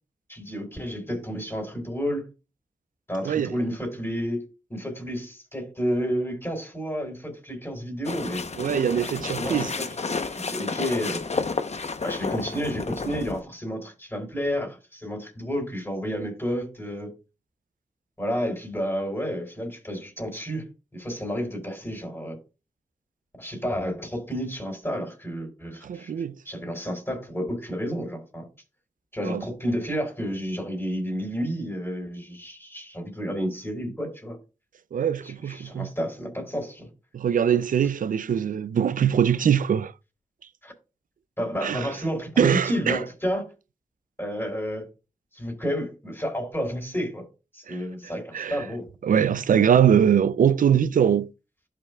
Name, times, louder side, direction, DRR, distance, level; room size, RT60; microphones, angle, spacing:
voice 1, 0.3-2.3 3.1-4.4 4.7-8.5 9.0-9.1 9.3-9.9 10.3-11.3 12.0-17.1 18.2-22.4 23.4-26.1 26.5-28.5 29.1-34.4 35.2-36.9 40.6-40.7 41.4-43.5 44.2-44.9 45.3-47.2 47.5-48.9, equal, 15° left, 4.0 m, -31 dB
voice 2, 3.2-3.6 8.6-9.7 25.8-26.4 29.2-29.4 34.9-35.9 37.1-39.9 41.6-41.9 42.4-43.0 47.7-47.8 48.3-48.7 49.0-51.3, right 8 dB, 75° right, 0.4 m, -22 dB
sound 1, 8.0-13.4, left 4 dB, 50° left, 0.9 m, -31 dB
12.5 x 5.8 x 2.3 m
cardioid pair, 40°, 14 cm